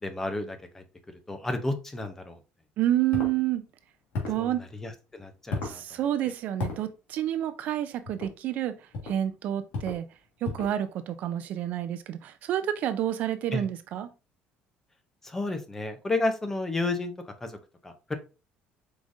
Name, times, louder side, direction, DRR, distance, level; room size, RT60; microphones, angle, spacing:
voice 1, 0.0-2.4 4.4-5.8 13.5-13.7 15.2-17.6 17.8-18.2, left 2 dB, 10° left, 0.5 m, -32 dB
voice 2, 2.8-3.6 4.3-4.6 5.6-8.7 9.0-10.1 10.4-14.1, right 12 dB, 45° right, 0.3 m, -29 dB
sound 1, 3.1-3.4 4.1-4.5 5.5-5.8 6.6-6.8 8.1-8.3 8.9-9.2 9.7-10.0 10.4-10.8, left 3 dB, 60° left, 1.8 m, -33 dB
4.8 x 3.8 x 2.6 m
cardioid pair, 180°, 4 cm